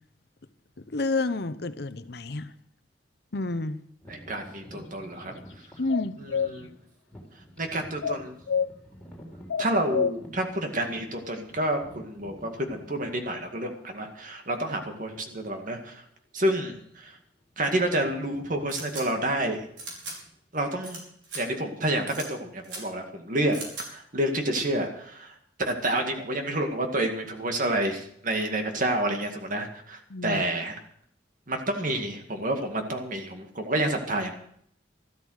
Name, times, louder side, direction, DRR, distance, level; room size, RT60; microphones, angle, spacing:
voice 1, 0.9-2.5 3.3-3.8 5.8-6.2 30.1-30.4, left 3 dB, 60° left, 13 dB, 0.8 m, -29 dB
sound 1, 4.0-13.8 14.4-14.5 15.2-15.4 15.7-15.9 16.6-17.1 17.4-20.8, equal, 5° left, 4.0 m, -50 dB
voice 2, 4.1-5.3 6.2-6.7 7.6-8.4 9.6-16.0 16.3-17.2 17.6-19.6 20.5-21.0 21.3-23.6 23.8-25.4 25.7-30.8 31.5-34.3, right 1 dB, 45° right, 4 dB, 2.1 m, -29 dB
sound 2, 5.9-6.5 8.0-8.7 9.5-10.2, left 7 dB, 90° left, 0.5 m, -26 dB
sound 3, 18.7-19.0 19.8-20.1 20.8-21.0 21.2-21.4 22.1-22.3 22.6-22.8 23.5-23.8, right 2 dB, 75° right, 5.3 m, -38 dB
13.5 x 13.0 x 6.5 m, 0.67 s
head